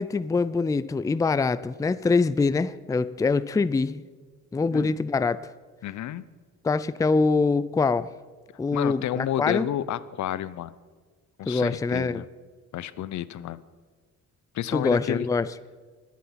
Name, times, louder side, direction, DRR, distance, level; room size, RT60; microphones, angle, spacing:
voice 1, 0.0-4.0 4.5-5.4 6.6-8.1 8.6-9.7 11.5-12.2 14.7-15.5, left 4 dB, 10° left, 0.4 m, -24 dB
voice 2, 5.8-6.2 8.7-10.7 11.4-12.2 12.7-13.6 14.5-15.3, left 12 dB, 70° left, 0.7 m, -30 dB
21.5 x 8.5 x 5.7 m
cardioid pair, 90°, 30 cm